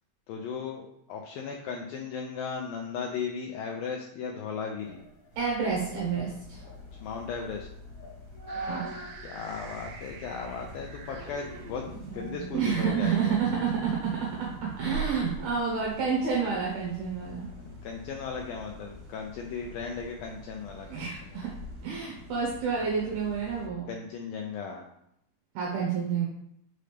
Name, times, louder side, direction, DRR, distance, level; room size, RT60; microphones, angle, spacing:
voice 1, 0.3-5.0 7.0-7.7 9.2-13.3 17.6-21.4 23.9-24.9, left 5 dB, 85° left, 1 dB, 2.0 m, -37 dB
sound 1, 4.8-9.3 9.6-9.7 10.4-10.7 11.1-13.1 13.5-16.0, right 4 dB, 55° left, 3.1 m, -42 dB
sound 2, 5.3-23.7, left 2 dB, 40° right, 1.9 m, -47 dB
voice 2, 5.4-6.6 8.6-8.8 12.5-17.5 20.9-21.5 21.8-23.9 25.5-26.3, right 6 dB, 70° right, -4 dB, 3.0 m, -29 dB
sound 3, 8.5-16.4, right 6 dB, 90° right, 3.0 m, -45 dB
6.7 x 5.2 x 3.3 m, 0.75 s
omnidirectional pair, 4.9 m